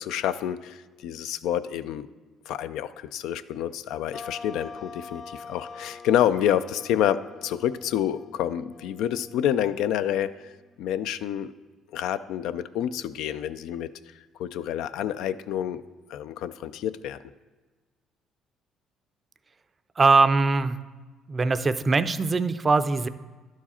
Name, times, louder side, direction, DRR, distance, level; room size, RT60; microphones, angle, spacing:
voice 1, 0.0-2.1 2.5-10.3 10.8-11.5 11.9-13.9 14.4-15.8 16.1-17.2, left 10 dB, 80° left, 13 dB, 0.3 m, -28 dB
sound 1, 4.1-10.8, left 4 dB, 50° left, 0.7 m, -45 dB
voice 2, 20.0-20.8 21.3-23.1, right 3 dB, 30° right, 11 dB, 0.4 m, -21 dB
11.5 x 4.7 x 4.3 m, 1.3 s
supercardioid pair, 80°, 0 cm